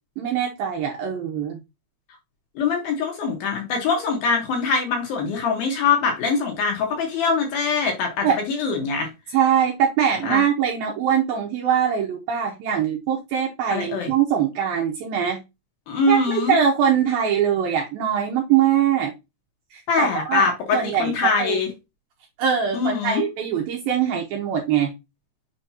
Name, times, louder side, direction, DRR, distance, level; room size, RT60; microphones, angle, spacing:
voice 1, 0.2-1.6 8.2-8.4 9.3-15.4 16.1-19.1 19.7-21.1 21.4-21.6 22.4-24.9, right 8 dB, 80° right, 2.2 m, -22 dB
voice 2, 2.6-9.1 10.2-10.4 13.7-14.1 15.9-16.5 19.9-21.7 22.7-23.2, left 4 dB, 65° left, 2.6 m, -23 dB
7.2 x 5.1 x 2.7 m
omnidirectional pair, 5.3 m